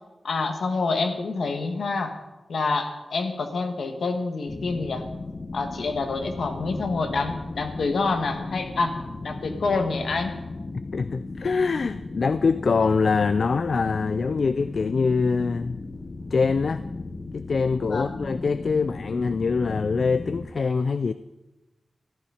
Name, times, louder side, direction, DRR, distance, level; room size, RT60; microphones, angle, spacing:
voice 1, 0.2-2.2 2.5-5.1 5.5-10.4 17.8-18.2, left 3 dB, 70° left, 6 dB, 1.5 m, -27 dB
sound 1, 4.5-20.5, left 3 dB, 30° left, 0.9 m, -36 dB
voice 2, 10.9-15.8 16.3-16.8 17.3-21.1, left 4 dB, 55° left, 13 dB, 0.3 m, -24 dB
13.5 x 11.5 x 5.0 m, 1.1 s
wide cardioid pair, 165°, 0 cm